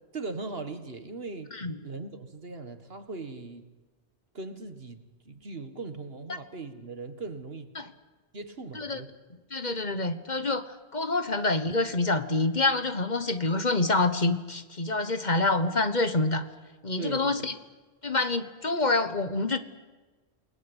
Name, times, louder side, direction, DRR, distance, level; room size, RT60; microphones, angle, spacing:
voice 1, 0.1-1.5 1.8-3.6 4.3-7.7 8.3-9.1 17.0-17.5, right 3 dB, 65° right, 9 dB, 2.1 m, -39 dB
voice 2, 9.5-16.4 16.8-17.5 18.0-19.6, left 2 dB, 45° left, 10 dB, 1.5 m, -27 dB
29.0 x 20.0 x 8.2 m, 1.3 s
omnidirectional pair, 1.1 m